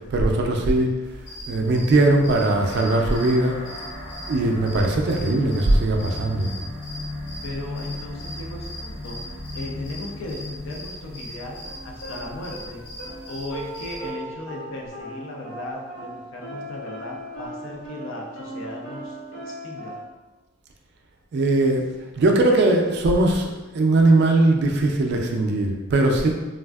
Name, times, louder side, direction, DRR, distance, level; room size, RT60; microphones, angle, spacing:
voice 1, 0.1-1.0 1.5-3.6 4.3-6.7 21.3-21.9 22.2-26.3, right 2 dB, 50° right, 1 dB, 0.3 m, -20 dB
sound 1, 1.0-14.1, left 1 dB, 40° left, 1.4 m, -40 dB
sound 2, 2.6-13.6, left 1 dB, 20° left, 0.8 m, -38 dB
voice 2, 7.4-12.8 13.3-20.0, left 2 dB, 60° left, -1 dB, 0.5 m, -36 dB
sound 3, 11.6-20.0, right 1 dB, 80° left, 1.0 m, -38 dB
3.3 x 2.4 x 2.3 m, 1.2 s
head